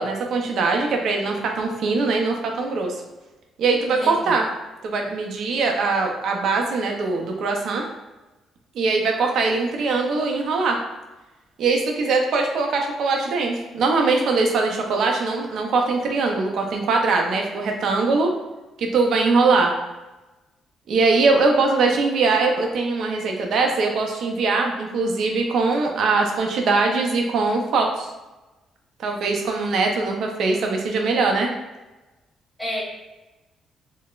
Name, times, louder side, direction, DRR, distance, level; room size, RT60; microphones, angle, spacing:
voice 1, 0.0-3.0 3.6-4.4 4.8-7.8 8.7-10.8 11.6-18.3 18.8-19.7 20.9-28.1 29.0-31.5, right 3 dB, 70° right, 2 dB, 0.5 m, -21 dB
voice 2, 3.9-4.4 32.6-32.8, equal, 5° left, -7 dB, 1.3 m, -30 dB
3.8 x 2.0 x 2.4 m, 1.1 s
cardioid pair, 90°, 0 cm